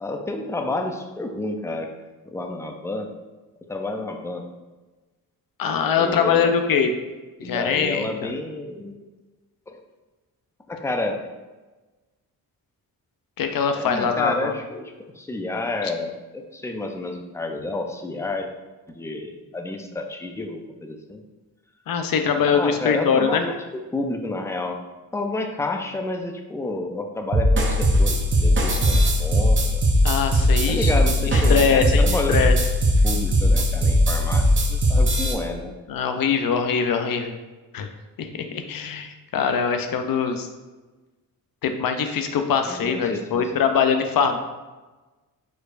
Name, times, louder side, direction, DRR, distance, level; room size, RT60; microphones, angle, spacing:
voice 1, 0.0-1.9 2.3-3.1 3.7-4.5 6.0-6.5 7.4-8.9 9.7-9.8 10.7-11.3 13.7-18.5 18.9-21.2 22.5-23.6 23.9-24.8 25.1-29.8 30.7-32.4 33.0-35.7 42.7-43.5, left 2 dB, 10° left, 4 dB, 0.4 m, -30 dB
voice 2, 5.6-6.9 7.4-8.3 13.4-14.5 15.8-15.9 21.9-23.4 30.0-30.9 31.2-32.5 35.9-37.4 37.7-37.9 38.2-40.5 41.6-44.4, left 6 dB, 65° left, 7 dB, 0.6 m, -22 dB
sound 1, 27.3-35.3, equal, 35° right, 0.7 m, -19 dB
4.6 x 4.5 x 2.5 m, 1.2 s
cardioid pair, 115°, 36 cm